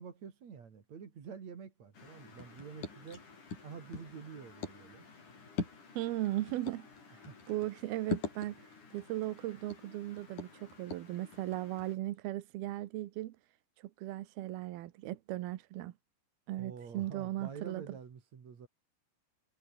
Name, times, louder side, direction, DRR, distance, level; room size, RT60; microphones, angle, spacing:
voice 1, 0.0-3.3 3.6-5.1 7.3-7.4 16.6-18.7, right 6 dB, 45° right, 3.7 m, -48 dB
sound 1, 1.9-12.0, left 4 dB, 45° left, 7.1 m, -45 dB
voice 2, 6.0-6.9 7.5-8.6 8.9-13.4 14.0-15.9 16.5-17.8, right 15 dB, 70° right, 2.8 m, -37 dB
omnidirectional pair, 5.0 m